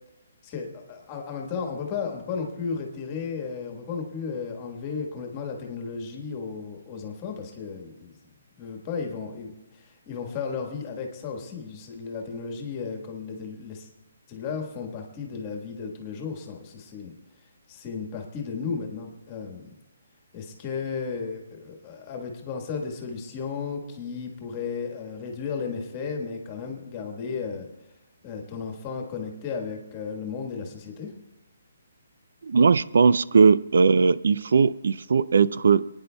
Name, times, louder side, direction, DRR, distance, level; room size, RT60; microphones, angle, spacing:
voice 1, 0.4-8.1 8.6-13.9 14.3-17.1 17.7-19.6 20.3-27.7 28.2-31.1, left 5 dB, 20° left, 2 dB, 1.4 m, -34 dB
voice 2, 32.4-35.8, right 5 dB, 65° right, 18 dB, 0.3 m, -19 dB
28.0 x 9.6 x 2.2 m, 0.95 s
hypercardioid pair, 175°, 0 cm